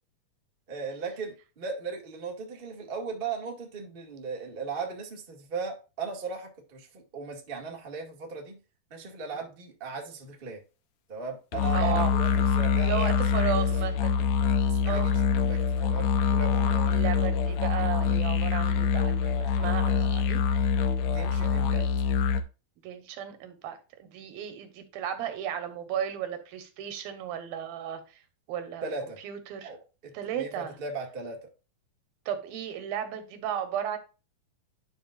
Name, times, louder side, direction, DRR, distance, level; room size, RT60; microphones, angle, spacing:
voice 1, 0.7-8.6 8.9-10.6 11.1-13.5 14.7-16.9 20.7-21.8 28.8-29.2 29.6-29.8 30.0-31.5, right 4 dB, 35° right, 0.9 m, -37 dB
sound 1, 11.5-22.4, left 6 dB, 85° left, 1.5 m, -25 dB
voice 2, 11.7-12.1 12.8-14.2 14.9-15.1 16.9-20.7 22.8-28.2 28.5-28.9 29.2-29.7 30.1-30.8 32.3-34.0, right 9 dB, 85° right, 3.0 m, -34 dB
10.5 x 5.5 x 2.4 m
omnidirectional pair, 4.2 m